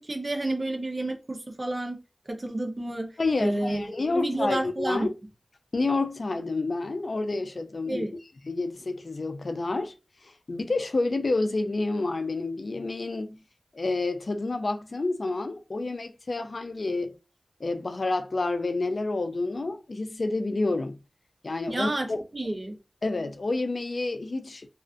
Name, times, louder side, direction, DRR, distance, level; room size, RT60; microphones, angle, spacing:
voice 1, 0.0-2.0 2.3-3.8 4.1-5.0 7.9-8.1 21.7-22.1 22.3-22.8, right 1 dB, 45° right, 0.6 m, -30 dB
voice 2, 3.2-5.1 5.7-8.1 8.4-9.9 10.2-13.4 13.7-17.2 17.6-21.0 21.4-22.2 23.0-24.7, left 3 dB, 75° left, 0.3 m, -29 dB
2.4 x 2.3 x 2.4 m
wide cardioid pair, 45°, 0 cm